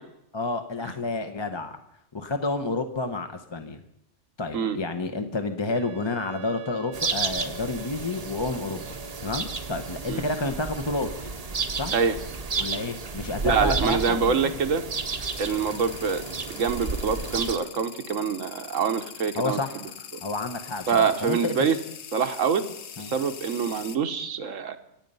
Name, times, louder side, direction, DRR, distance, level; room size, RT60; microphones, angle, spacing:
voice 1, 0.3-1.8 2.1-3.8 4.4-8.8 9.2-11.1 11.7-11.9 12.6-14.5 19.3-21.8 23.0-23.1, left 3 dB, 25° left, 6 dB, 0.8 m, -30 dB
Wind instrument woodwind instrument, 5.7-10.8, right 3 dB, 55° right, 1.1 m, -45 dB
sound 1, 6.9-17.6, right 4 dB, 35° right, 0.9 m, -32 dB
voice 2, 13.4-14.8 15.4-16.2 16.5-19.9 20.9-21.8 22.1-22.6 23.0-24.8, right 6 dB, 80° right, 8 dB, 1.4 m, -25 dB
sound 2, 15.3-24.0, left 8 dB, 60° left, 1.1 m, -42 dB
25.5 x 8.9 x 5.5 m, 0.81 s
omnidirectional pair, 1.3 m